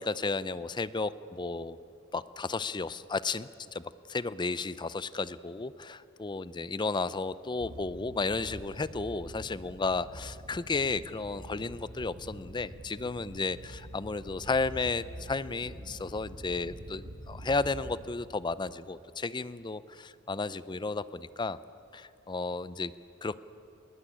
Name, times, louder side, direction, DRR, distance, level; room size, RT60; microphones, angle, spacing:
voice 1, 0.0-1.8 2.1-3.8 4.1-21.6 21.9-22.9 23.2-23.4, left 3 dB, 20° left, 16 dB, 0.5 m, -33 dB
sound 1, 7.6-18.1, equal, 80° right, 2.2 m, -46 dB
21.0 x 19.5 x 10.0 m, 2.6 s
head